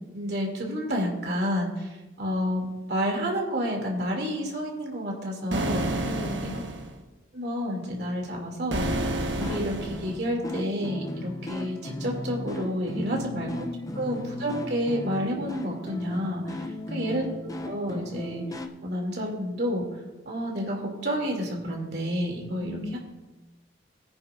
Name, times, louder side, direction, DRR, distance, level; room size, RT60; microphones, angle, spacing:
voice 1, 0.1-6.0 6.4-6.5 7.3-9.0 9.3-13.6 14.0-17.3 17.6-18.4 18.8-19.8 20.2-23.0, equal, 60° right, 0 dB, 2.8 m, -30 dB
sound 1, 5.5-6.9 8.7-10.1, right 1 dB, 85° right, 1.4 m, -29 dB
voice 2, 6.0-6.6 12.9-14.0 16.6-17.1 22.6-23.0, left 1 dB, 70° left, 2 dB, 1.2 m, -37 dB
sound 2, 8.8-18.7, left 1 dB, 20° left, 0.7 m, -37 dB
20.0 x 9.6 x 2.6 m, 1.1 s
head